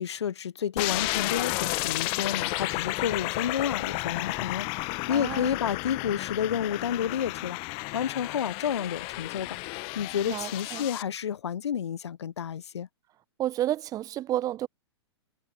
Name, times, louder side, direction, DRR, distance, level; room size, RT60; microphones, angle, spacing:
voice 1, 0.0-9.6 9.9-12.9, left 8 dB, 75° left, 0.6 m, -31 dB
sound 1, 0.8-11.0, left 29 dB, 40° left, 1.2 m, -32 dB
voice 2, 5.1-5.5 10.3-10.9 13.4-14.7, right 13 dB, 25° right, 0.8 m, -31 dB
figure-of-eight pair, 110°, 14 cm